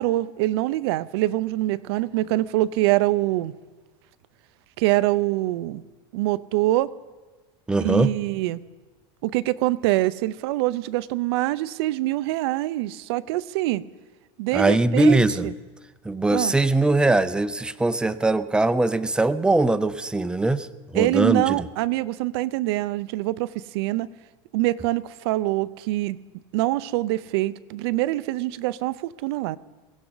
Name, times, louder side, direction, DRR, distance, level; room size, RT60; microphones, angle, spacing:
voice 1, 0.0-3.5 4.8-5.8 6.1-6.9 7.8-8.6 9.2-13.8 14.4-15.2 16.3-16.5 20.9-24.1 24.5-26.2 26.5-29.6, right 16 dB, 75° right, 16 dB, 0.6 m, -24 dB
voice 2, 7.7-8.1 14.5-15.5 16.0-21.7, right 2 dB, 5° right, 12 dB, 0.5 m, -21 dB
22.5 x 16.0 x 4.0 m, 1.3 s
supercardioid pair, 140°, 13 cm